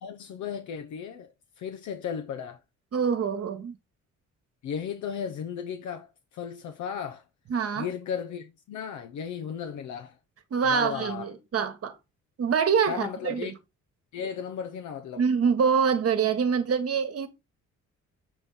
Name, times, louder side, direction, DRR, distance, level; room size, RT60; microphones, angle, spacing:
voice 1, 0.0-2.6 4.6-7.2 7.8-10.2 10.6-11.3 12.9-13.5 14.1-15.2, left 7 dB, 75° left, 0.7 m, -35 dB
voice 2, 2.9-3.8 7.5-7.9 10.5-12.0 12.4-13.5 15.2-17.3, right 6 dB, 50° right, 1.3 m, -25 dB
7.3 x 3.6 x 4.0 m
cardioid pair, 90°, 30 cm